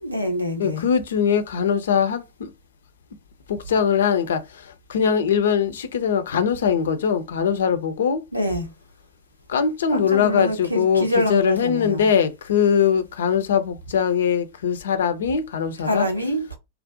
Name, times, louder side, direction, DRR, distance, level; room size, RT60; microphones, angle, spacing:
voice 1, 0.0-0.8 8.3-8.7 9.9-12.1 15.8-16.6, equal, 90° right, 0.6 m, -25 dB
voice 2, 0.6-2.5 3.5-8.2 9.5-16.1, left 7 dB, 65° left, 0.4 m, -21 dB
2.4 x 2.0 x 2.6 m
figure-of-eight pair, 90°, 0 cm